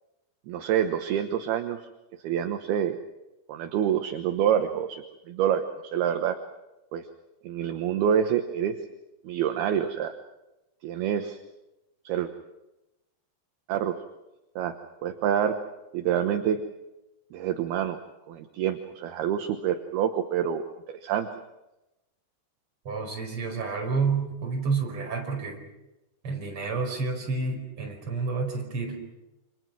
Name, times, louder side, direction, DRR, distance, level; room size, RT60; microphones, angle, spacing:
voice 1, 0.5-1.9 2.2-3.0 3.5-6.4 6.9-7.1 7.4-8.8 9.2-10.2 10.8-11.4 12.0-12.3 13.7-13.9 14.6-14.7 15.0-15.6 15.9-16.6 17.3-18.0 18.3-20.7 21.0-21.3, right 9 dB, 70° right, 7 dB, 2.9 m, -27 dB
voice 2, 22.9-25.6 26.2-29.0, right 4 dB, 30° right, 1 dB, 5.5 m, -29 dB
29.0 x 26.5 x 6.1 m, 0.95 s
omnidirectional pair, 5.0 m